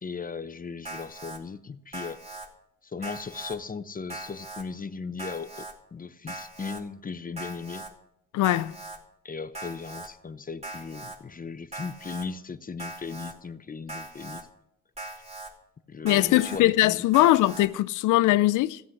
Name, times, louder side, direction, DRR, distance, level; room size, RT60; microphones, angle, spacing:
voice 1, 0.0-2.2 2.8-7.8 9.2-14.5 15.9-17.3, left 5 dB, 30° left, 0.8 m, -37 dB
Alarm, 0.8-1.4 1.9-2.5 3.0-3.6 4.1-4.6 5.2-5.7 6.3-6.8 7.4-7.9 8.4-9.0 9.5-10.1 10.6-11.2 11.7-12.3 12.8-13.3 13.9-14.4 15.0-15.5 16.1-16.6 17.1-17.7, right 2 dB, 20° right, 4.5 m, -40 dB
voice 2, 8.3-8.7 16.0-18.8, left 16 dB, 85° left, 0.6 m, -21 dB
15.5 x 7.6 x 9.7 m
cardioid pair, 90°, 30 cm